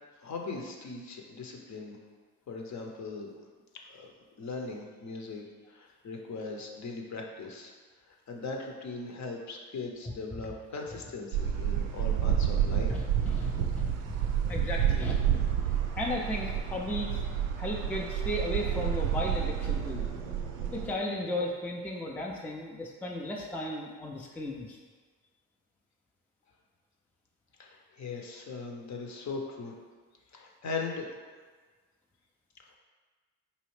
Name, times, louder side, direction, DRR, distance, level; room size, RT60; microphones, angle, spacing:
voice 1, 0.2-2.0 2.5-3.3 3.9-4.1 4.4-7.7 8.1-12.9 27.6-29.7 30.3-31.1, left 3 dB, 40° left, 1 dB, 0.8 m, -39 dB
sound 1, 11.3-20.9, right 9 dB, 80° right, 0.5 m, -29 dB
voice 2, 12.9-15.1 15.7-17.1 17.6-20.1 20.7-24.8, left 1 dB, 5° left, -1 dB, 0.4 m, -35 dB
4.1 x 2.7 x 3.1 m, 1.4 s
hypercardioid pair, 50°, 42 cm